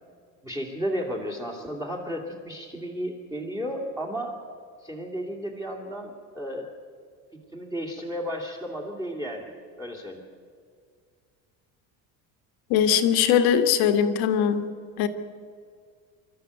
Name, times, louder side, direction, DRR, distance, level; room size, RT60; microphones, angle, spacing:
voice 1, 0.4-4.4 4.8-6.7 7.5-9.5 9.8-10.2, equal, 10° right, 0 dB, 2.5 m, -33 dB
voice 2, 12.7-14.6 15.0-15.1, left 8 dB, 70° left, 8 dB, 1.6 m, -21 dB
25.5 x 13.5 x 8.2 m, 2.1 s
cardioid pair, 150°, 38 cm